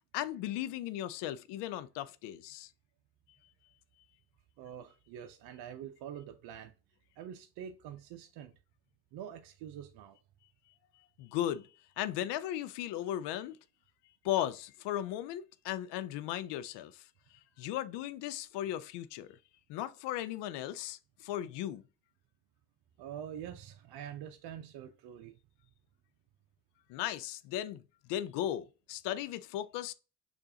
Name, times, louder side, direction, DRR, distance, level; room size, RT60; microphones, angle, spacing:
voice 1, 0.1-2.7 11.2-11.7 12.0-13.6 14.2-16.9 17.6-19.4 19.7-21.8 26.9-27.8 28.1-29.9, left 12 dB, 60° left, 0.6 m, -36 dB
voice 2, 4.6-6.7 7.2-8.5 9.1-10.2 23.0-25.4, right 9 dB, 55° right, 0.6 m, -45 dB
6.6 x 2.6 x 2.8 m
hypercardioid pair, 55°, 47 cm